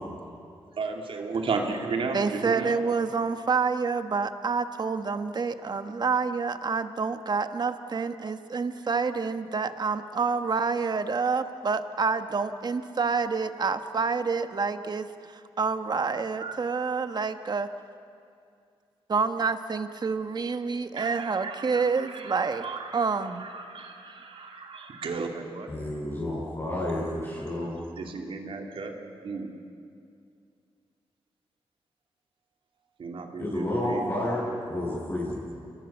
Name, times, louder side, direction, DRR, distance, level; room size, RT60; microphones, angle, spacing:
voice 1, 0.8-2.8 16.4-16.6 21.0-25.7 28.0-28.9 29.2-29.5 33.0-34.0, right 4 dB, 70° right, 2 dB, 3.1 m, -34 dB
voice 2, 2.1-15.1 15.6-17.7 19.1-22.6 22.9-23.5, right 5 dB, 45° right, 9 dB, 1.3 m, -28 dB
voice 3, 25.7-27.8 33.4-35.4, left 1 dB, 25° left, -8 dB, 7.4 m, -30 dB
29.0 x 21.5 x 7.3 m, 2.4 s
cardioid pair, 85°, 10 cm